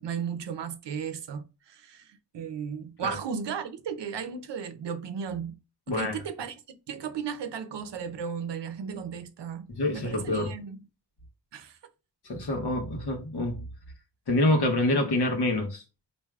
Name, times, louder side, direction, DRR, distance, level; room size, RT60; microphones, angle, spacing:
voice 1, 0.0-5.6 5.9-10.8 11.5-11.8, right 7 dB, 85° right, 0.6 m, -35 dB
voice 2, 5.9-6.2 9.7-10.5 12.2-13.7 14.3-15.8, left 1 dB, 65° left, 1.1 m, -26 dB
4.7 x 2.6 x 2.3 m
wide cardioid pair, 120°, 41 cm